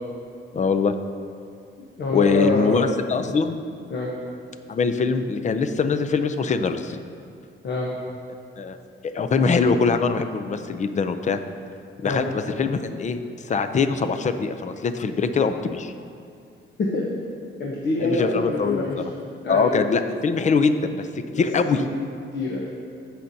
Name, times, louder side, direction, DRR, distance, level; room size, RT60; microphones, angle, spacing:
voice 1, 0.5-0.9 2.1-3.6 4.7-7.0 8.6-8.8 9.0-11.4 12.0-15.9 18.0-18.9 19.5-21.8, left 5 dB, 35° left, 9 dB, 0.4 m, -23 dB
voice 2, 1.8-2.9 3.2-3.3 3.9-4.1 7.6-7.9 12.0-12.2 16.8-17.1 17.6-19.0 19.4-19.9 21.3-21.4 21.7-21.9 22.3-22.7, left 2 dB, 55° left, -3 dB, 1.0 m, -26 dB
16.0 x 5.8 x 2.7 m, 2.4 s
wide cardioid pair, 140°, 21 cm